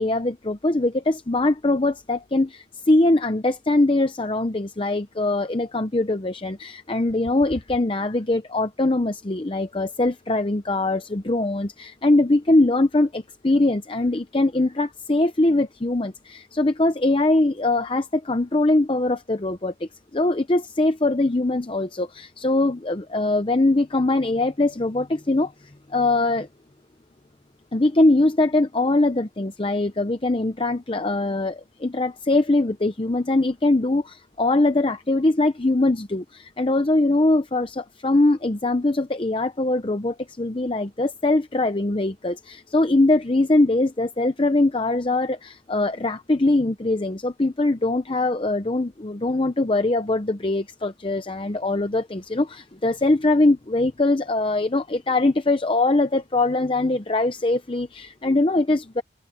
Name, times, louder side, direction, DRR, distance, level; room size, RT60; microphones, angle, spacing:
voice 1, 0.0-26.5 27.7-59.0, left 2 dB, 25° left, 0.7 m, -22 dB
head